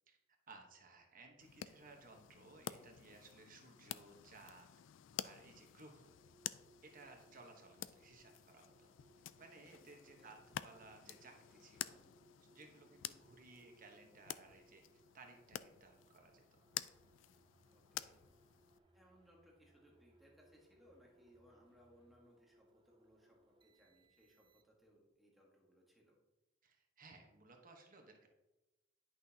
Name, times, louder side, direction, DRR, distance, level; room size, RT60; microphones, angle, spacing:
voice 1, 0.5-4.7 5.2-6.1 6.8-8.9 9.4-12.0 12.5-16.6 26.6-28.3, right 3 dB, 45° right, 3 dB, 1.2 m, -60 dB
sound 1, 1.4-18.8, left 11 dB, 80° left, 0.3 m, -51 dB
sound 2, 6.0-25.0, right 1 dB, 25° right, 0.4 m, -71 dB
sound 3, 16.8-22.1, right 1 dB, 25° left, 2.3 m, -75 dB
voice 2, 17.7-18.2 18.9-26.2, equal, ahead, -2 dB, 1.5 m, -67 dB
10.5 x 6.1 x 2.8 m, 1.0 s
head